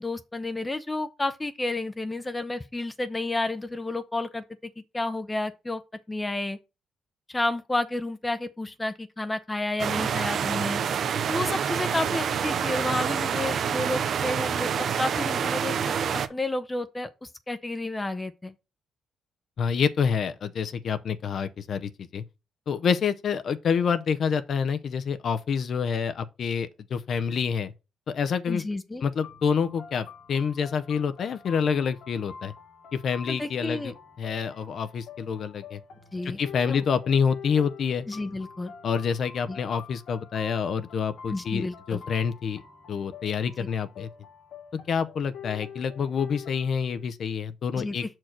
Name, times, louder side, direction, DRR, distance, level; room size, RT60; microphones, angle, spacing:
voice 1, 0.0-4.4 4.9-5.8 6.1-6.6 7.3-10.8 11.3-15.9 16.3-18.5 28.5-29.0 33.3-33.9 36.1-36.4 36.7-36.8 38.1-38.7 39.5-39.6 41.3-42.0 47.8-48.0, left 2 dB, 15° left, 0.7 m, -31 dB
Medium Rain, 9.8-16.3, right 7 dB, 60° right, 0.8 m, -27 dB
voice 2, 19.6-22.2 22.7-27.7 28.1-28.6 29.0-32.5 32.9-35.8 36.2-38.1 38.8-42.6 42.9-44.1 44.7-48.0, left 6 dB, 60° left, 0.6 m, -27 dB
sound 1, 29.2-47.0, left 6 dB, 75° left, 2.0 m, -46 dB
6.4 x 4.5 x 5.8 m
cardioid pair, 90°, 0 cm